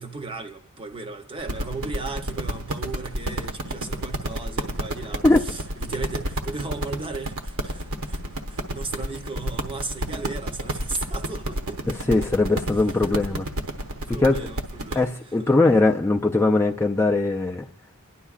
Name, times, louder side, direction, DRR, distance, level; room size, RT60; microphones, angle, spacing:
voice 1, 0.0-12.0 13.9-15.5, right 3 dB, 25° right, 0.7 m, -36 dB
sound 1, 1.4-15.0, right 1 dB, 70° right, 1.0 m, -30 dB
voice 2, 12.1-13.5 14.1-14.5 14.9-17.7, left 2 dB, 10° left, 0.4 m, -20 dB
29.5 x 11.0 x 2.4 m
head